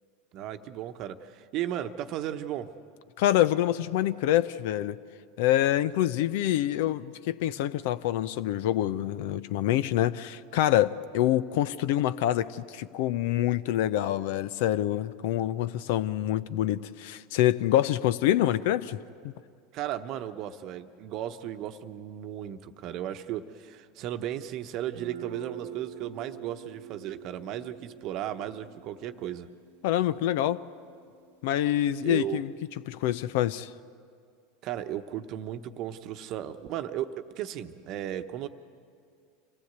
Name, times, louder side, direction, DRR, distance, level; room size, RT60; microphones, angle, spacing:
voice 1, 0.3-2.7 19.7-29.5 32.0-32.4 34.6-38.5, right 11 dB, 55° right, 9 dB, 1.0 m, -35 dB
voice 2, 3.2-5.0 5.4-19.0 19.2-19.3 29.8-30.6 31.4-32.5 32.9-33.7, left 13 dB, 70° left, 16 dB, 0.6 m, -26 dB
Guitar, 24.9-32.6, right 9 dB, 80° right, 1.1 m, -47 dB
25.5 x 16.0 x 8.2 m, 2.3 s
hypercardioid pair, 90°, 0 cm